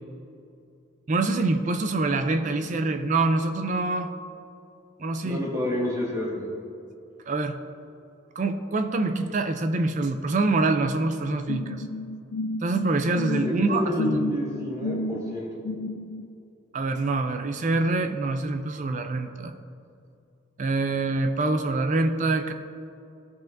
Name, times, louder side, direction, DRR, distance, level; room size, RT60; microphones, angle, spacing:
voice 1, 1.1-4.1 5.0-5.4 7.3-7.6 8.4-11.8 12.6-14.2 16.7-19.5 20.6-22.5, right 2 dB, 35° right, 7 dB, 0.4 m, -25 dB
voice 2, 5.2-6.5 13.4-15.5, left 1 dB, 15° right, -4 dB, 1.6 m, -29 dB
sound 1, 11.5-16.3, left 2 dB, 85° left, 0.4 m, -32 dB
15.0 x 5.5 x 2.6 m, 2.6 s
head